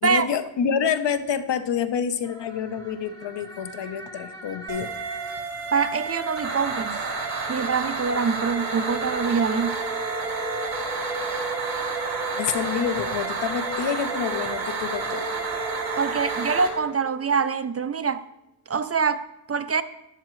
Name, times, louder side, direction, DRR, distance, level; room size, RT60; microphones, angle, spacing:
voice 1, 0.0-4.9 12.4-15.3, left 7 dB, 70° left, 0.9 m, -27 dB
sound 1, 2.2-17.5, right 1 dB, 10° left, 1.7 m, -37 dB
sound 2, 4.7-16.7, right 4 dB, 50° right, 2.6 m, -30 dB
voice 2, 5.7-7.0 7.5-9.8 16.0-18.2 18.7-19.8, right 5 dB, 35° right, 0.5 m, -24 dB
12.5 x 10.5 x 3.1 m
wide cardioid pair, 105°, 44 cm